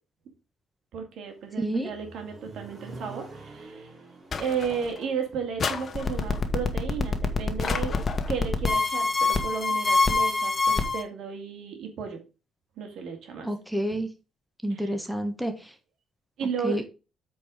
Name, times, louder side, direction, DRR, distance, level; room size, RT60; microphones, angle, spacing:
voice 1, 0.9-3.9 4.4-7.9 8.3-12.2 12.8-13.5 14.7-15.0 16.4-16.8, right 6 dB, 75° right, 4 dB, 2.3 m, -34 dB
Accelerating revving vroom, 1.3-7.3, right 3 dB, 40° right, 4.6 m, -48 dB
voice 2, 1.6-1.9 13.4-14.1 14.6-15.5 16.6-16.9, right 1 dB, ahead, 6 dB, 1.4 m, -28 dB
sound 1, 4.3-5.1 5.6-6.5 7.6-8.4, left 6 dB, 50° left, 1.0 m, -34 dB
sound 2, 5.9-11.0, left 4 dB, 30° left, 1.4 m, -24 dB
8.1 x 4.7 x 5.1 m, 0.31 s
cardioid pair, 90°, 0 cm